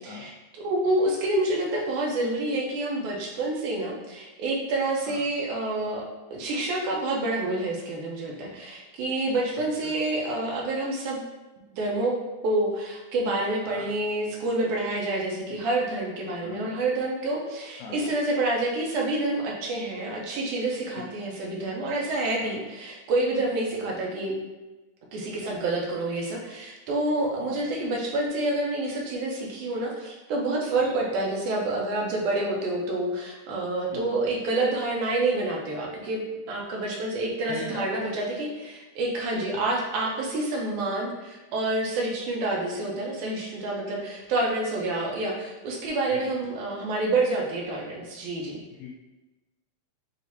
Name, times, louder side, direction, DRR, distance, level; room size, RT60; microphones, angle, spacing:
voice 1, 0.0-11.2 11.7-12.2 12.4-24.4 25.1-48.6, right 2 dB, 80° right, -2 dB, 2.1 m, -28 dB
voice 2, 9.5-9.9 13.7-13.9 15.5-15.6 16.4-16.7 17.8-18.1 20.9-21.1 22.3-22.6 23.8-24.0 25.4-25.6 27.4-27.7 30.9-31.0 33.9-34.2 37.5-37.9 46.1-46.2 48.8-48.9, left 4 dB, 85° left, -2 dB, 1.5 m, -40 dB
6.4 x 2.5 x 2.7 m, 1.1 s
omnidirectional pair, 3.6 m